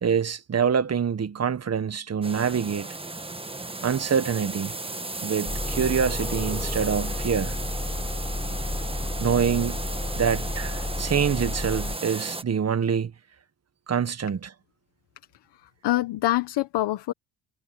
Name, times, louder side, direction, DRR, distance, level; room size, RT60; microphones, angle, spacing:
voice 1, 0.0-2.9 3.8-4.7 5.2-7.6 9.2-9.8 10.1-13.1 13.9-14.5, right 7 dB, 35° right, 1.6 m, -25 dB
sound 1, 2.2-12.4, right 2 dB, 15° right, 1.5 m, -35 dB
sound 2, 5.4-12.0, left 2 dB, 15° left, 3.7 m, -31 dB
voice 2, 15.6-17.1, left 15 dB, 75° left, 1.3 m, -25 dB
cardioid pair, 75°, 41 cm